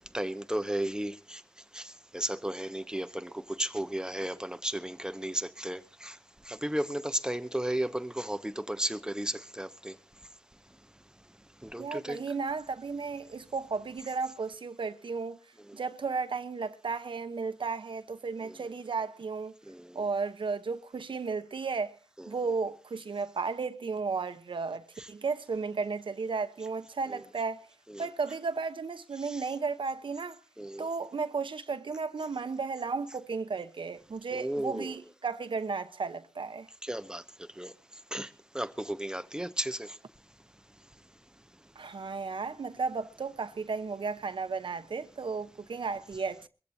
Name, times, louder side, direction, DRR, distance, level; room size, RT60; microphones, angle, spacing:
voice 1, 0.1-1.4 1.7-6.2 6.4-10.0 11.6-12.2 18.5-18.6 19.7-20.0 28.0-28.1 30.6-30.9 34.3-34.9 36.8-37.2 37.6-37.7 38.1-38.3 38.5-40.0, right 1 dB, 10° right, 1.0 m, -34 dB
voice 2, 11.8-15.4 15.7-19.5 19.9-22.0 22.3-27.7 28.0-30.4 30.8-36.7 41.8-46.5, right 4 dB, 90° right, 1.0 m, -34 dB
22.5 x 15.5 x 2.8 m
wide cardioid pair, 85°, 8 cm